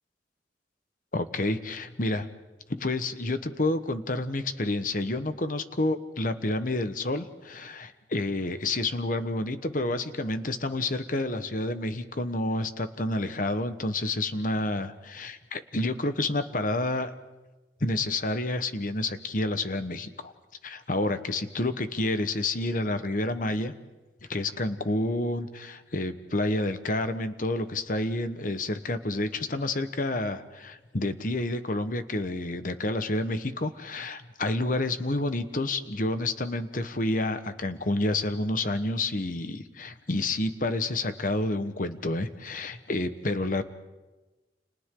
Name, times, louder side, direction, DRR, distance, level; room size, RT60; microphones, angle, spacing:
voice 1, 1.1-2.3 2.7-17.1 17.8-20.3 20.6-23.7 24.3-43.6, left 2 dB, 50° left, 10 dB, 1.3 m, -29 dB
30.0 x 29.5 x 3.9 m, 1.2 s
head